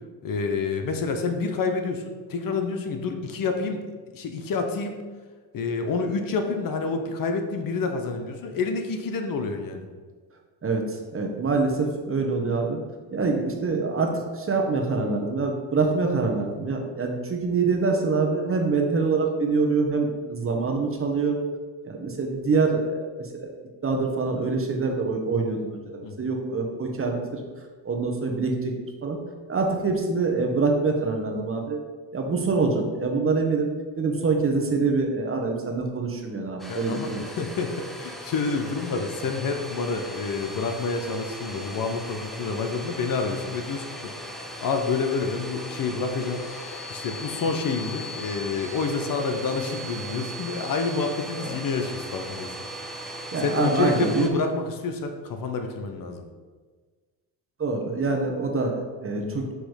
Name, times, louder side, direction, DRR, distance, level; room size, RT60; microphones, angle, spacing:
voice 1, 0.2-3.8 4.1-5.0 5.5-9.9 26.0-26.3 36.7-44.3 44.6-46.4 46.9-52.5 53.4-56.3 59.2-59.5, left 4 dB, 55° left, 5 dB, 0.8 m, -28 dB
voice 2, 10.6-12.8 13.1-21.4 21.8-23.5 23.8-27.4 27.8-28.7 29.0-29.2 29.5-31.8 32.1-33.7 34.0-37.3 51.4-51.5 53.3-54.2 57.6-59.5, right 4 dB, 30° right, 2 dB, 1.1 m, -25 dB
Domestic sounds home sounds, 36.6-54.3, equal, ahead, 0.8 m, -38 dB
6.3 x 3.0 x 5.1 m, 1.4 s
supercardioid pair, 80°, 41 cm